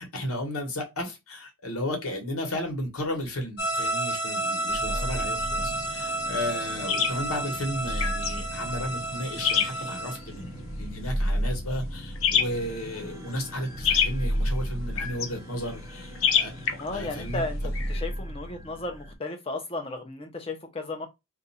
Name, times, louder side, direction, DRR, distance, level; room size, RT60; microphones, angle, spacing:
voice 1, 0.0-16.5 16.9-17.4, left 1 dB, 85° left, 1.2 m, -34 dB
sound 1, 3.6-10.2, right 2 dB, 50° left, 1.1 m, -31 dB
sound 2, 4.7-19.1, equal, 15° right, 0.5 m, -34 dB
voice 2, 4.9-5.3 16.8-17.6 17.9-21.1, left 2 dB, 25° left, 0.7 m, -34 dB
sound 3, 5.6-18.0, left 7 dB, 65° left, 0.6 m, -31 dB
2.6 x 2.3 x 4.1 m
head